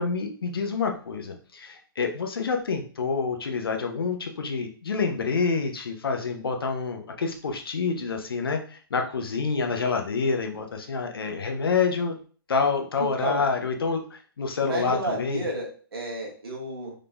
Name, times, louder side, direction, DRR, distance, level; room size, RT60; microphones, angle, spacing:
voice 1, 0.0-12.2 12.5-15.4, left 5 dB, 70° left, 4 dB, 0.7 m, -27 dB
voice 2, 13.0-13.4 14.6-16.9, right 1 dB, 75° right, -1 dB, 1.5 m, -32 dB
3.7 x 3.5 x 2.2 m, 0.42 s
figure-of-eight pair, 125°, 13 cm